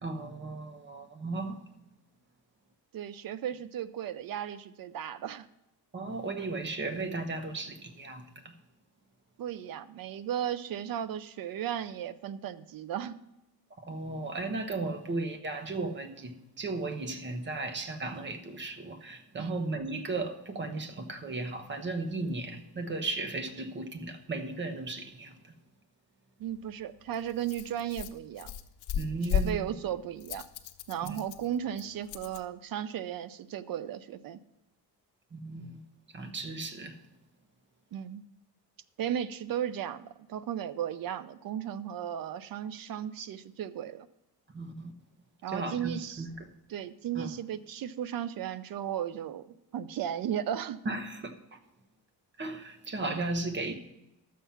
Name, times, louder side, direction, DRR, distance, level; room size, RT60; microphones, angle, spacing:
voice 1, 0.0-1.6 5.9-8.5 13.8-25.5 29.0-29.6 31.0-31.2 35.3-35.8 36.1-37.0 44.5-44.9 45.5-46.5 47.1-47.3 50.8-51.6 52.4-53.7, right 3 dB, 30° right, 1.1 m, -36 dB
voice 2, 2.9-5.5 9.4-13.2 19.4-19.6 26.4-28.5 29.3-30.5 30.9-34.4 37.9-38.2 39.0-44.1 45.4-46.3 46.7-50.8, right 10 dB, 60° right, 0.6 m, -35 dB
Rattle, 26.4-32.4, left 8 dB, 80° left, 1.0 m, -36 dB
12.0 x 7.5 x 5.6 m
cardioid pair, 170°, 39 cm